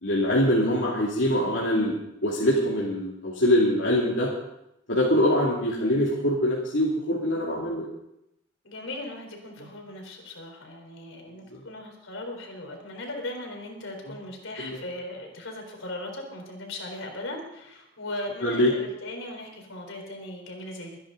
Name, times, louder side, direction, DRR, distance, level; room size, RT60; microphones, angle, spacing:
voice 1, 0.0-4.3 4.9-7.9 9.6-9.7 11.5-11.6 14.0-14.1 14.6-14.8 18.4-18.7, left 1 dB, 70° left, -5 dB, 2.6 m, -24 dB
voice 2, 8.6-21.0, left 1 dB, 90° left, 2 dB, 4.1 m, -38 dB
24.0 x 10.0 x 4.0 m, 0.83 s
head